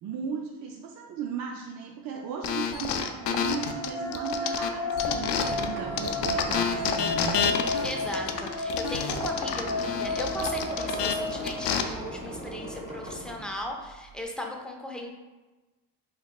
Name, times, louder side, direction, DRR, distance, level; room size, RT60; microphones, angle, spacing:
voice 1, 0.0-7.5, right 6 dB, 55° right, 1 dB, 0.5 m, -36 dB
sound 1, 2.4-5.7 6.0-11.8, left 7 dB, 75° left, 0.5 m, -29 dB
sound 2, 3.0-12.2, left 2 dB, 35° right, 1.0 m, -33 dB
Squeak, 4.6-14.2, equal, 15° right, 1.2 m, -41 dB
voice 2, 7.8-15.1, left 1 dB, ahead, 0 dB, 0.4 m, -37 dB
5.2 x 3.1 x 2.3 m, 1.2 s
cardioid pair, 115°, 42 cm